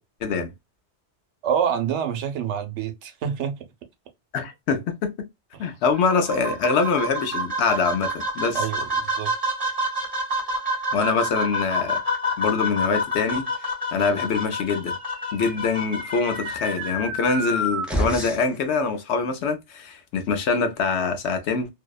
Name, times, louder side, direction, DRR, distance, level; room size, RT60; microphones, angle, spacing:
voice 1, 0.2-0.5 4.3-5.1 5.6-8.7 10.9-12.0 12.4-13.5 13.9-14.9 15.3-21.7, left 5 dB, 75° left, 0.9 m, -24 dB
voice 2, 1.4-3.6 8.5-9.3, right 8 dB, 85° right, 0.9 m, -27 dB
sound 1, 5.9-16.9, equal, 20° right, 1.3 m, -28 dB
sound 2, 15.0-18.6, equal, ahead, 0.3 m, -30 dB
2.7 x 2.1 x 2.2 m
omnidirectional pair, 1.2 m